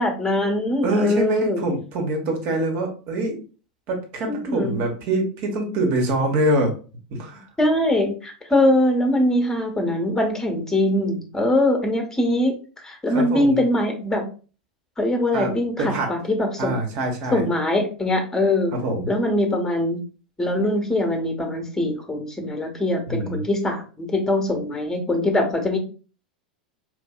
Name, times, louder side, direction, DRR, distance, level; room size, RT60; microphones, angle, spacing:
voice 1, 0.0-1.6 4.3-4.8 7.6-14.2 15.0-16.8 17.3-18.7 19.1-20.0 20.4-25.8, left 1 dB, 10° left, 4 dB, 1.0 m, -22 dB
voice 2, 0.8-3.4 3.9-6.7 7.1-7.5 13.1-13.6 15.3-15.5 15.8-16.1 16.6-17.4 18.7-19.1 23.1-23.4, right 1 dB, 50° right, 3 dB, 1.2 m, -24 dB
4.7 x 2.6 x 2.4 m, 0.37 s
figure-of-eight pair, 90°, 5 cm